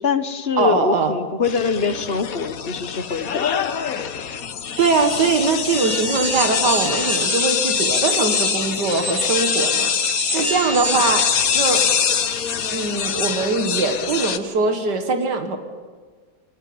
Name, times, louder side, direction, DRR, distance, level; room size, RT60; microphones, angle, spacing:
voice 1, 0.0-3.5, left 5 dB, 40° left, 10 dB, 1.2 m, -23 dB
voice 2, 0.6-1.1 4.8-11.3 11.5-11.8 12.7-15.6, right 4 dB, 90° right, 6 dB, 2.4 m, -21 dB
sound 1, 1.4-14.4, left 7 dB, 60° left, 1.5 m, -24 dB
sound 2, 5.6-11.4, right 4 dB, 50° right, 3.0 m, -29 dB
29.0 x 15.0 x 8.8 m, 1.5 s
omnidirectional pair, 1.8 m